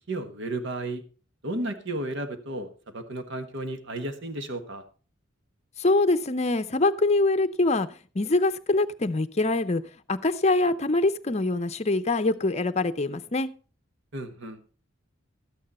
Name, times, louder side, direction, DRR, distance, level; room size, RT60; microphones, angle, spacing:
voice 1, 0.1-1.0 1.4-4.8 14.1-14.6, right 1 dB, 65° right, 8 dB, 1.4 m, -33 dB
voice 2, 5.8-7.9 8.1-9.8 10.1-13.5, left 2 dB, 35° left, 11 dB, 0.7 m, -24 dB
13.0 x 9.2 x 4.2 m, 0.37 s
head